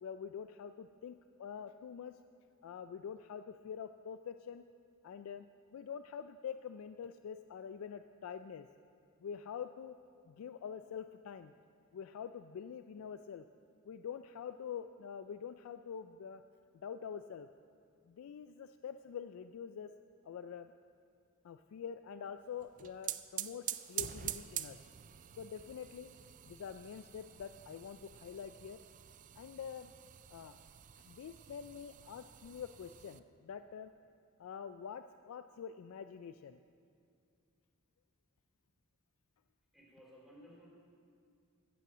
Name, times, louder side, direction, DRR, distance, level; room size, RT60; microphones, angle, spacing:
voice 1, 0.0-2.1 2.6-4.6 5.0-5.5 5.7-8.7 9.2-10.0 10.3-11.5 11.9-13.5 13.8-16.4 16.7-17.5 18.1-19.9 20.2-20.7 21.4-24.8 25.4-26.1 26.4-28.8 29.3-29.9 30.3-30.6 31.0-33.9 34.4-36.6, left 7 dB, 90° left, 10 dB, 0.3 m, -46 dB
sound 1, 22.6-33.2, right 11 dB, 40° right, 0.4 m, -46 dB
voice 2, 39.7-40.7, equal, ahead, -4 dB, 2.7 m, -57 dB
15.0 x 5.6 x 7.2 m, 2.4 s
head